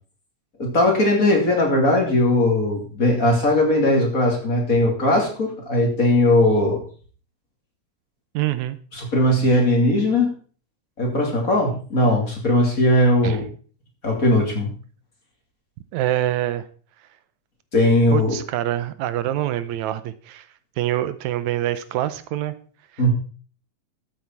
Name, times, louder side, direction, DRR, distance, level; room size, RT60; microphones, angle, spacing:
voice 1, 0.6-6.8 8.9-10.3 11.0-13.4 14.0-14.7 17.7-18.3 23.0-23.1, left 1 dB, 30° left, 0 dB, 3.0 m, -19 dB
voice 2, 8.3-8.8 13.2-13.4 15.9-16.7 18.1-20.5 20.8-22.5 22.9-23.1, right 13 dB, 80° right, 13 dB, 2.0 m, -25 dB
12.5 x 8.5 x 4.6 m, 0.41 s
omnidirectional pair, 3.3 m